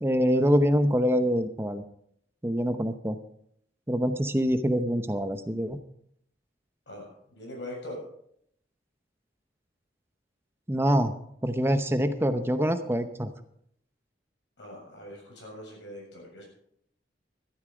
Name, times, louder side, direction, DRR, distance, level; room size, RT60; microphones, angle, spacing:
voice 1, 0.0-1.8 2.4-3.2 3.9-5.8 10.7-11.1 11.4-13.3, equal, 15° right, 9 dB, 0.8 m, -25 dB
voice 2, 6.9-8.0 14.6-16.5, left 1 dB, 85° left, -1 dB, 7.2 m, -42 dB
13.5 x 12.0 x 5.0 m, 0.70 s
head